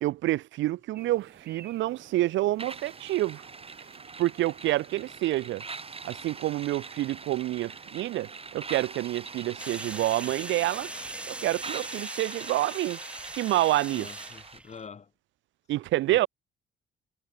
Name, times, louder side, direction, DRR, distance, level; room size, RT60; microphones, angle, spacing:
voice 1, 0.0-3.5 4.2-5.6 6.0-10.9 11.3-13.0 13.4-14.1 15.7-16.3, right 16 dB, 70° right, 0.4 m, -28 dB
sound 1, 0.9-12.1, right 8 dB, 50° right, 2.8 m, -53 dB
sound 2, 2.6-14.6, right 4 dB, 30° right, 5.5 m, -43 dB
sound 3, 9.6-14.9, right 1 dB, 5° right, 0.4 m, -40 dB
voice 2, 13.9-15.1 15.7-15.8 16.1-16.3, left 6 dB, 35° left, 1.2 m, -46 dB
cardioid pair, 90°, 20 cm